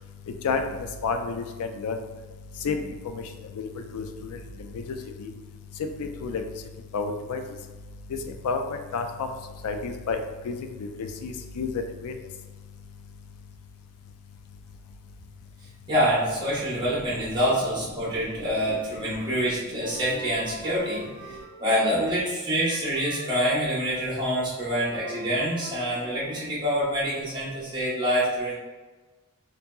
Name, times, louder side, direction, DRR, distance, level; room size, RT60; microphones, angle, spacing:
voice 1, 1.0-2.0 2.6-2.8 3.6-3.7 3.9-4.4 5.2-5.3 5.8-6.4 6.9-7.4 8.4-8.6 8.9-9.3 9.6-10.2 10.5-10.6 10.8-10.9 11.2-11.7 12.0-12.1, left 5 dB, 75° left, 6 dB, 0.3 m, -29 dB
voice 2, 15.9-28.5, equal, 20° right, -8 dB, 0.9 m, -26 dB
Wind instrument woodwind instrument, 19.8-22.2 22.5-26.6, left 2 dB, 30° left, 1.3 m, -42 dB
2.7 x 2.6 x 2.2 m, 1.3 s
head